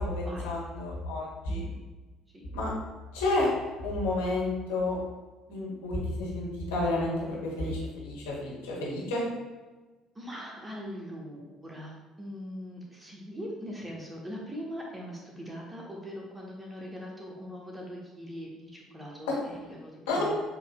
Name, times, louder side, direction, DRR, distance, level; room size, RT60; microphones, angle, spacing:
voice 1, 0.0-1.6 2.5-2.7 3.1-3.5 3.8-5.0 5.5-9.2 19.3-19.4 20.1-20.3, left 2 dB, 70° left, -5 dB, 1.2 m, -30 dB
voice 2, 5.5-5.8 10.1-20.3, equal, 15° right, -2 dB, 1.0 m, -41 dB
7.0 x 2.8 x 2.3 m, 1.2 s
figure-of-eight pair, 55°, 0 cm